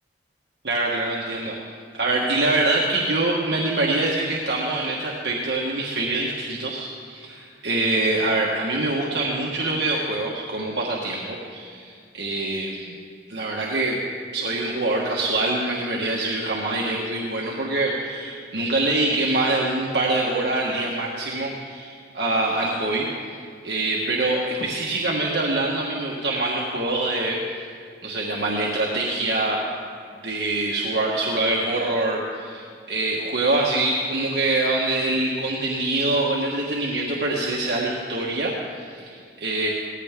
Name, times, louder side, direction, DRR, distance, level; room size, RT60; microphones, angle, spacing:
voice 1, 0.6-1.6 1.9-12.9 13.3-14.0 14.3-23.0 23.6-27.4 28.0-29.7 30.2-39.7, right 2 dB, 75° right, -3 dB, 1.5 m, -24 dB
18.0 x 14.5 x 3.7 m, 2.1 s
head